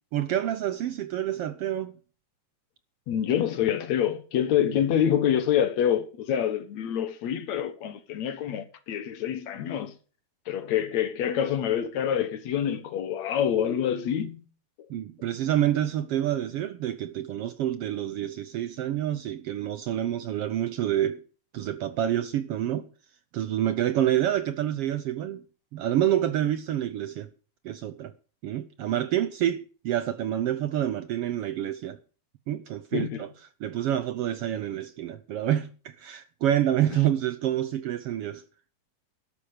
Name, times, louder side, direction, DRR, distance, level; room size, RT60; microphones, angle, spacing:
voice 1, 0.1-2.0 14.9-21.2 21.5-22.9 23.3-25.4 25.7-27.3 27.6-28.1 28.4-32.0 32.5-33.3 33.6-38.4, right 11 dB, 70° right, 1.5 m, -28 dB
voice 2, 3.1-9.9 10.5-14.4 32.9-33.2, left 9 dB, 70° left, 2.6 m, -26 dB
12.5 x 12.5 x 5.0 m
omnidirectional pair, 3.3 m